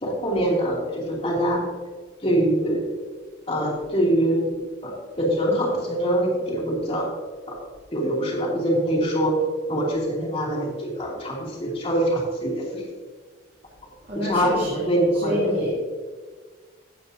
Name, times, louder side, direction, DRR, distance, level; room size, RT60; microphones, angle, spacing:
voice 1, 0.0-1.6 2.2-2.9 3.5-4.5 4.8-7.1 7.5-7.6 7.9-9.4 9.7-12.9 14.1-15.7, right 1 dB, 30° left, -3 dB, 2.7 m, -24 dB
voice 2, 14.1-14.8 15.2-15.7, left 1 dB, 45° right, -9 dB, 3.2 m, -27 dB
16.0 x 8.5 x 2.7 m, 1.4 s
head